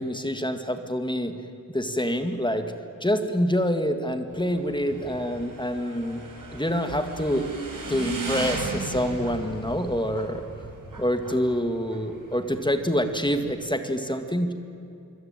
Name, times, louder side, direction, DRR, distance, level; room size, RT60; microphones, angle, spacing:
voice 1, 0.0-1.3 1.7-2.7 3.0-6.2 6.5-7.5 7.9-10.4 11.0-14.5, equal, 15° left, 7 dB, 2.0 m, -26 dB
Motorcycle / Engine, 4.3-13.5, right 3 dB, 75° right, 5.4 m, -37 dB
26.0 x 24.5 x 9.1 m, 2.8 s
wide cardioid pair, 100°, 33 cm